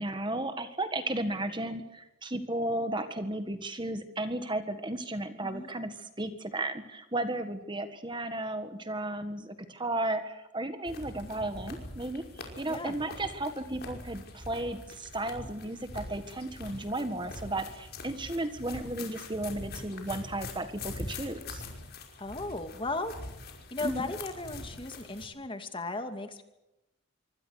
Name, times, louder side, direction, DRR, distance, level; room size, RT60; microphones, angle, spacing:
voice 1, 0.0-21.6 23.8-24.0, right 1 dB, 20° right, 9 dB, 1.7 m, -34 dB
Running through countryside, 10.8-25.3, left 2 dB, 50° left, 5.5 m, -44 dB
voice 2, 22.2-23.1 23.7-26.4, left 2 dB, 25° left, 7 dB, 2.5 m, -36 dB
25.5 x 25.0 x 6.5 m, 0.91 s
head